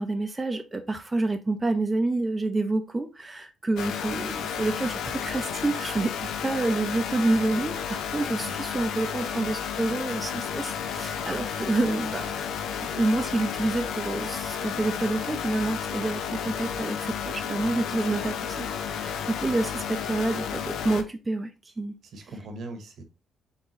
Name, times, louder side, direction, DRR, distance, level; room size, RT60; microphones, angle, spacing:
voice 1, 0.0-12.3 12.8-21.5 21.8-21.9, right 2 dB, 20° right, 0.5 m, -28 dB
sound 1, 3.8-21.0, left 7 dB, 80° left, 0.5 m, -32 dB
voice 2, 22.0-23.0, right 2 dB, 65° right, 1.0 m, -41 dB
4.0 x 3.5 x 2.9 m
cardioid pair, 90°, 0 cm